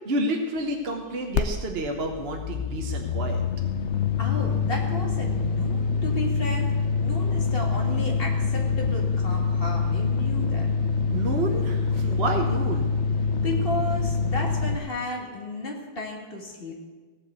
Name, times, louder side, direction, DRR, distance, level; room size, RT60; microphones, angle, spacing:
voice 1, 0.0-3.4 11.1-13.0, right 2 dB, 40° right, 2 dB, 1.0 m, -29 dB
sound 1, 1.3-14.8, left 5 dB, 70° left, 0.6 m, -25 dB
voice 2, 4.2-6.7 7.0-10.7 13.4-16.7, left 1 dB, 30° left, 0 dB, 2.2 m, -33 dB
17.0 x 5.8 x 8.2 m, 1.4 s
omnidirectional pair, 2.1 m